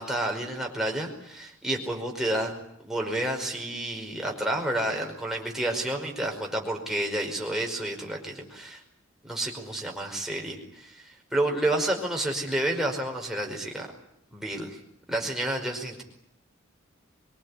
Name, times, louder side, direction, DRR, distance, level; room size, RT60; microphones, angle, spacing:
voice 1, 0.0-2.5 2.8-8.8 9.2-13.9 14.3-14.8 15.1-16.0, right 1 dB, ahead, 0 dB, 5.1 m, -30 dB
24.0 x 24.0 x 9.9 m, 0.76 s
head